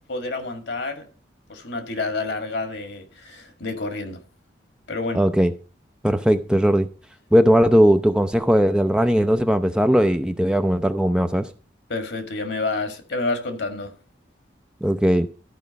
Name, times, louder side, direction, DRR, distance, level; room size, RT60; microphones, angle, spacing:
voice 1, 0.1-1.0 1.5-4.2 4.9-5.2 11.9-13.9, left 3 dB, 85° left, 1.8 m, -29 dB
voice 2, 5.1-5.5 6.0-6.9 7.3-11.5 14.8-15.3, equal, 5° right, 0.5 m, -18 dB
13.0 x 5.1 x 5.1 m
head